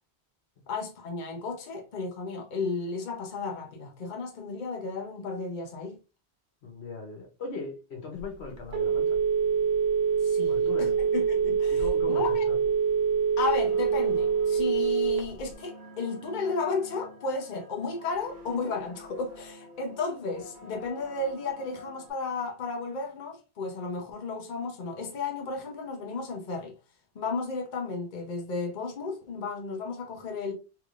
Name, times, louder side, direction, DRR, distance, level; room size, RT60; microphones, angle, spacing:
voice 1, 0.7-6.0 10.2-12.5 13.4-26.7 27.1-30.5, left 4 dB, 50° left, 0.9 m, -33 dB
voice 2, 6.6-9.2 10.5-11.0 11.8-12.6, left 3 dB, 80° left, 1.2 m, -39 dB
Telephone, 8.2-15.5, right 6 dB, 75° right, 1.0 m, -25 dB
sound 1, 13.6-22.1, left 1 dB, 50° right, 1.6 m, -48 dB
3.4 x 3.3 x 2.4 m
omnidirectional pair, 1.1 m